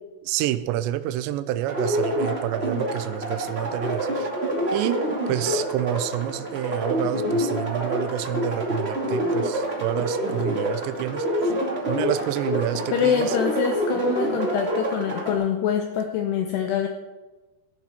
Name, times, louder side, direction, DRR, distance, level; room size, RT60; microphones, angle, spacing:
voice 1, 0.2-4.3 4.7-5.0 5.3-11.5 11.9-13.4, right 13 dB, 85° right, 11 dB, 2.6 m, -28 dB
sound 1, 1.7-15.3, equal, 65° right, 0.6 m, -27 dB
sound 2, 8.7-8.8 9.0-9.3 9.6-9.8 10.3-10.5 10.9-11.2 11.5-11.7 12.1-12.3 12.7-13.0 13.3-13.6 14.0-14.3 14.6-15.0 15.3-15.5, left 3 dB, 55° left, 1.8 m, -41 dB
voice 2, 12.9-16.9, left 8 dB, 80° left, 5 dB, 2.4 m, -25 dB
16.5 x 11.0 x 4.3 m, 1.2 s
omnidirectional pair, 5.8 m